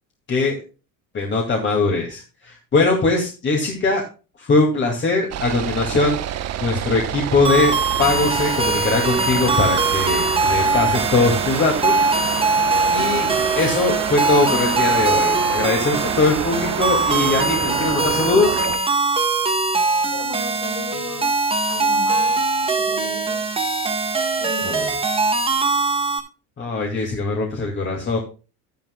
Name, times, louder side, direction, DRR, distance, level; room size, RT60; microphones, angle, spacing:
voice 1, 1.1-4.1 4.4-7.7 8.0-12.0 12.9-13.3 13.6-18.6 24.6-24.9 26.6-28.2, left 3 dB, 30° left, 1 dB, 2.3 m, -21 dB
sound 1, 5.3-18.8, right 10 dB, 40° right, 1.0 m, -28 dB
sound 2, 7.4-26.2, right 3 dB, 15° right, 1.6 m, -21 dB
voice 2, 20.1-21.4 21.7-23.5 24.4-25.0, left 4 dB, 45° left, 3 dB, 4.1 m, -35 dB
12.5 x 10.5 x 2.2 m, 0.33 s
cardioid pair, 145°, 38 cm